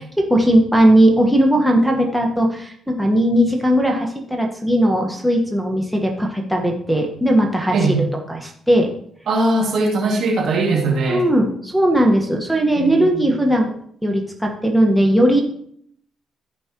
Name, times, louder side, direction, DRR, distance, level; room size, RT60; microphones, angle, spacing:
voice 1, 0.2-7.8 8.3-8.9 11.1-13.7 14.0-15.4, right 1 dB, 5° right, 0 dB, 1.4 m, -17 dB
voice 2, 9.3-11.2 12.7-13.2, right 2 dB, 65° right, 0 dB, 2.4 m, -20 dB
14.0 x 5.3 x 3.1 m, 0.65 s
cardioid pair, 90°, 0 cm